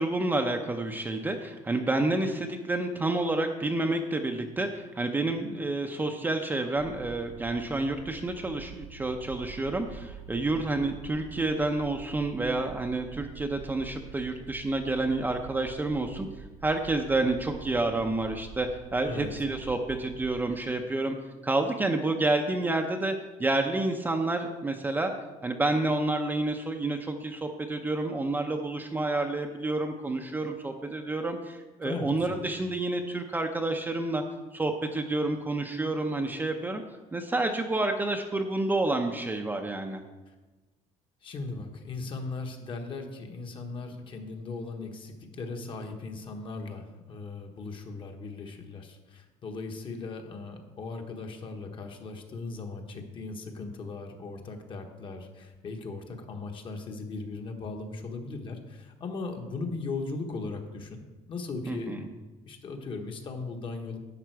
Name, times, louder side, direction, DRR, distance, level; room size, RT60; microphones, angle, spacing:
voice 1, 0.0-16.3 16.6-21.2 21.4-23.1 23.4-25.1 25.4-34.2 34.5-36.8 37.1-40.0 61.7-62.0, right 2 dB, 15° right, 4 dB, 0.6 m, -29 dB
sound 1, 6.8-20.4, right 7 dB, 90° right, 2.0 m, -46 dB
voice 2, 31.8-32.4 40.3-40.4 41.2-61.0 61.3-62.1 62.4-64.0, left 3 dB, 35° left, 4 dB, 1.2 m, -38 dB
11.0 x 7.2 x 4.6 m, 1.2 s
cardioid pair, 150°, 14 cm